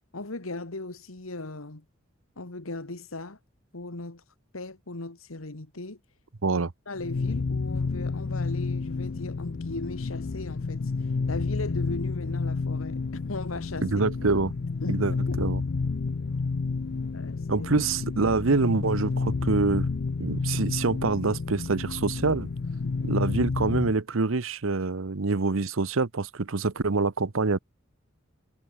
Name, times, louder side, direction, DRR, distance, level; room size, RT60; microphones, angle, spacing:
voice 1, 0.1-1.8 2.4-3.4 3.7-4.2 4.5-6.0 6.9-13.9 14.8-15.4 16.1-16.2 17.1-17.7 22.8-23.2, left 2 dB, 85° left, 2.0 m, -38 dB
sound 1, 7.0-24.0, left 4 dB, 50° left, 0.5 m, -30 dB
voice 2, 13.8-14.5 14.9-15.6 17.5-19.9 20.2-22.5 23.0-27.6, right 3 dB, 75° right, 0.9 m, -26 dB
head